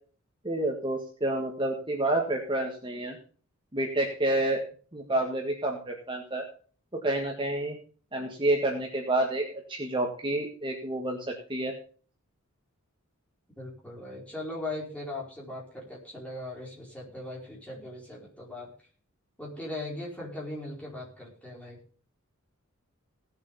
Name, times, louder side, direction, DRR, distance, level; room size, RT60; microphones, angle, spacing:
voice 1, 0.4-3.2 3.7-4.6 4.9-6.4 6.9-7.8 8.1-11.7, right 1 dB, 25° right, 1 dB, 1.6 m, -29 dB
voice 2, 13.6-18.7 19.4-21.8, left 1 dB, 5° left, -4 dB, 4.7 m, -39 dB
17.0 x 7.5 x 5.5 m, 0.43 s
head